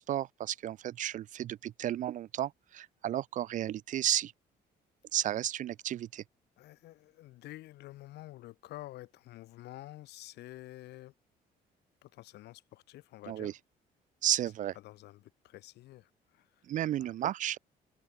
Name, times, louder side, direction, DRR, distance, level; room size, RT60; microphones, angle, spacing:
voice 1, 0.0-4.3 5.1-6.2 13.3-13.5 14.2-14.7 16.7-17.6, right 12 dB, 50° right, 0.4 m, -33 dB
voice 2, 6.6-11.1 12.0-13.5 14.7-16.7 17.0-17.2, left 16 dB, 80° left, 5.5 m, -49 dB
open air
cardioid pair, 110°, 17 cm